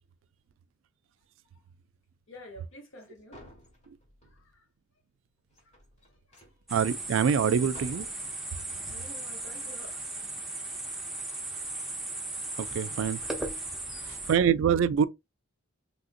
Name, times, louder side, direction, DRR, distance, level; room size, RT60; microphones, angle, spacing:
voice 1, 2.3-3.4 4.2-4.7 5.6-5.8 6.0-6.7 8.9-10.2 11.1-11.5 13.8-14.2, left 1 dB, 70° left, 1.2 m, -51 dB
sound 1, 3.0-3.1 3.3-4.5 5.5-6.6 7.4-7.5 7.7-8.1, equal, 35° left, 1.1 m, -51 dB
sound 2, 6.7-14.4, right 2 dB, ahead, 0.5 m, -37 dB
voice 2, 6.7-8.1 12.6-13.2 14.3-15.1, right 7 dB, 65° right, 0.3 m, -25 dB
3.4 x 2.5 x 2.5 m
head